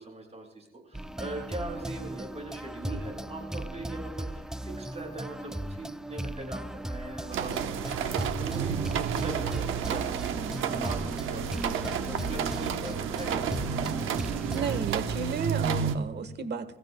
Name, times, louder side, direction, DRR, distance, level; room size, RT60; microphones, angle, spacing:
voice 1, 0.0-13.5, right 2 dB, 35° right, -1 dB, 6.6 m, -41 dB
sound 1, 0.9-14.8, right 1 dB, 5° right, 0.4 m, -37 dB
sound 2, 7.3-16.0, right 8 dB, 85° right, 1.0 m, -31 dB
voice 2, 14.5-16.8, right 5 dB, 60° right, 12 dB, 1.3 m, -33 dB
27.0 x 15.0 x 2.2 m, 1.0 s
cardioid pair, 90°, 20 cm